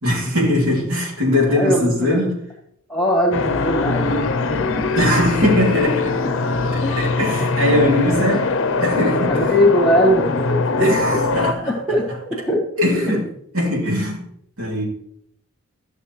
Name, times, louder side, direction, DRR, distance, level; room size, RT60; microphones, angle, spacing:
voice 1, 0.0-2.4 5.0-6.1 6.7-8.5 8.8-9.4 10.8-11.7 12.8-13.2 13.5-14.2 14.6-14.9, left 1 dB, 80° right, -3 dB, 2.9 m, -20 dB
voice 2, 1.5-2.2 2.9-4.7 6.2-6.3 6.8-7.0 7.3-7.5 8.1-8.4 9.3-11.2 11.6-12.6, equal, 5° left, -6 dB, 1.8 m, -21 dB
sound 1, 3.3-11.5, left 3 dB, 60° left, 0.6 m, -21 dB
12.5 x 6.6 x 3.2 m, 0.71 s
head